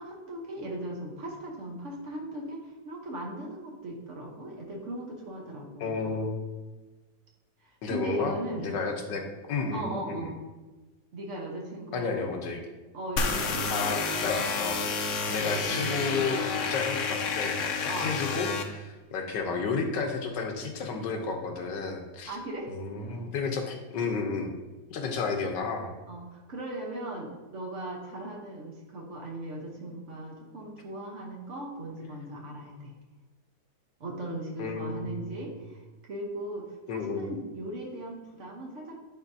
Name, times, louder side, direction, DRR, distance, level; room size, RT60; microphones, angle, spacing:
voice 1, 0.0-6.0 7.9-8.7 9.7-10.4 11.1-12.3 12.9-14.0 15.6-16.2 17.9-18.2 22.3-23.3 26.1-32.9 34.0-39.0, right 1 dB, 50° right, -1 dB, 1.1 m, -38 dB
voice 2, 5.8-6.4 7.8-10.3 11.9-12.6 13.7-22.4 22.7-24.5 24.9-25.9 34.6-35.5 36.9-37.3, left 4 dB, 85° left, 3 dB, 1.5 m, -32 dB
sound 1, 13.2-18.6, left 4 dB, 60° left, 0.8 m, -30 dB
10.5 x 3.7 x 2.7 m, 1.2 s
omnidirectional pair, 1.8 m